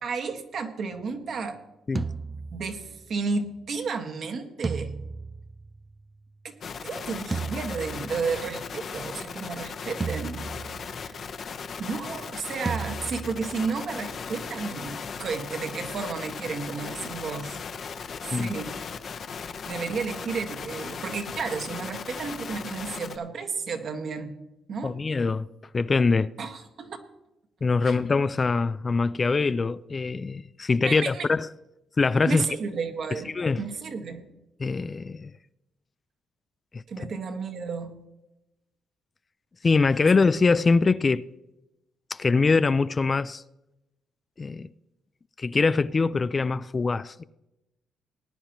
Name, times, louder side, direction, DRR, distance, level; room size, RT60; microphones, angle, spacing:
voice 1, 0.0-1.6 2.5-5.0 6.4-6.5 6.8-10.5 11.0-11.2 11.8-17.5 18.3-18.8 19.6-24.3 24.7-25.0 26.4-27.0 27.8-28.0 30.8-31.3 32.2-34.2 36.9-37.9, right 5 dB, 60° right, 1.6 m, -32 dB
sound 1, 2.0-3.1 4.6-6.2 7.3-8.5 10.0-11.2 12.7-13.8, right 4 dB, 30° right, 0.4 m, -35 dB
sound 2, 6.6-23.2, left 6 dB, 55° left, 0.9 m, -37 dB
voice 2, 24.8-25.5 25.7-26.3 27.6-31.5 32.0-32.4 33.3-33.6 34.6-35.3 36.7-36.8 39.6-41.3 42.1-43.4 44.4-44.7 45.4-47.2, left 4 dB, 30° left, 0.4 m, -23 dB
19.0 x 10.0 x 3.0 m
cardioid pair, 90°, 0 cm